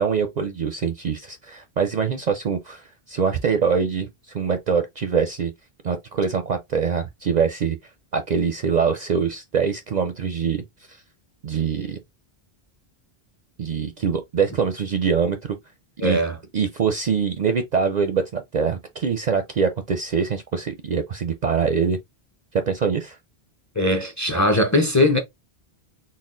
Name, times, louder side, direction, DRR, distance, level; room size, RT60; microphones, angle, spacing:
voice 1, 0.0-4.1 4.3-5.5 5.8-7.8 8.1-10.6 10.9-11.0 11.4-12.0 13.6-15.6 16.0-16.2 16.5-22.0 22.5-23.2, right 6 dB, 55° right, 0.5 m, -24 dB
voice 2, 16.0-16.4 23.8-25.2, left 1 dB, 20° left, 0.6 m, -20 dB
4.1 x 2.1 x 3.7 m
omnidirectional pair, 1.1 m